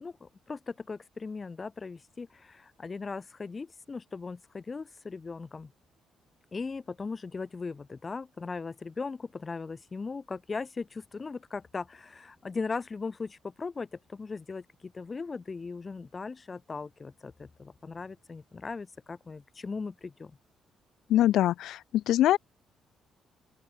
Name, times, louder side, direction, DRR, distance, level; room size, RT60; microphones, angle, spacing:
voice 1, 0.0-5.7 6.5-20.4, left 4 dB, 30° left, 6.7 m, -38 dB
voice 2, 21.1-22.4, left 13 dB, 80° left, 0.4 m, -23 dB
open air
cardioid pair, 90°, 0 cm